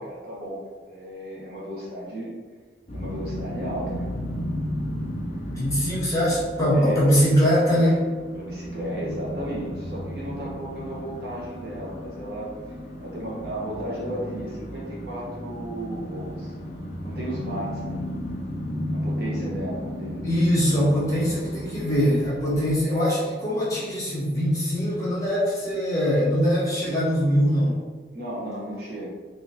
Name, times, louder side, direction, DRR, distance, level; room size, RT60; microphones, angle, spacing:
voice 1, 0.0-2.3 2.9-4.1 6.7-7.1 8.3-12.5 13.0-16.5 17.0-18.1 18.9-20.2 22.6-22.8 28.1-29.1, right 1 dB, 60° right, -5 dB, 1.0 m, -34 dB
sound 1, 2.9-22.7, equal, 35° left, 0.7 m, -34 dB
voice 2, 5.5-8.0 20.2-27.8, equal, 20° left, -9 dB, 1.3 m, -22 dB
4.1 x 3.1 x 2.7 m, 1.4 s
head